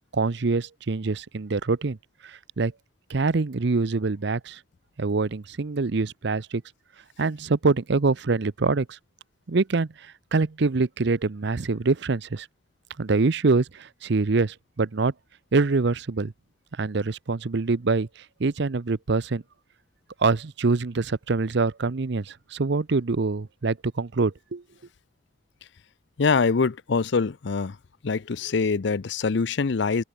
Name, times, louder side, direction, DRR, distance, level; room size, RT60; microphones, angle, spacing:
voice 1, 0.1-2.0 2.2-2.7 3.1-4.6 5.0-6.6 7.2-9.0 9.5-12.5 13.0-15.1 15.5-16.3 16.8-18.1 18.4-19.4 20.2-24.6, right 3 dB, 60° right, 0.7 m, -25 dB
voice 2, 26.2-27.8 28.0-30.0, left 4 dB, 65° left, 0.6 m, -24 dB
open air
head